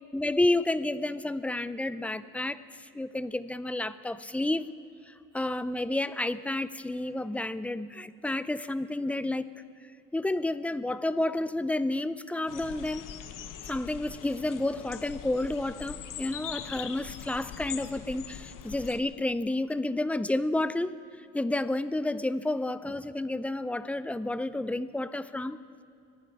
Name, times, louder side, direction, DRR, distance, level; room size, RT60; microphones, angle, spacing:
voice 1, 0.0-4.7 5.1-9.5 10.1-13.0 13.7-20.9 21.3-25.6, left 2 dB, 5° left, 14 dB, 0.5 m, -30 dB
sound 1, 12.5-19.0, left 9 dB, 70° left, 0.9 m, -42 dB
25.0 x 11.0 x 4.8 m, 2.6 s
cardioid pair, 100°, 33 cm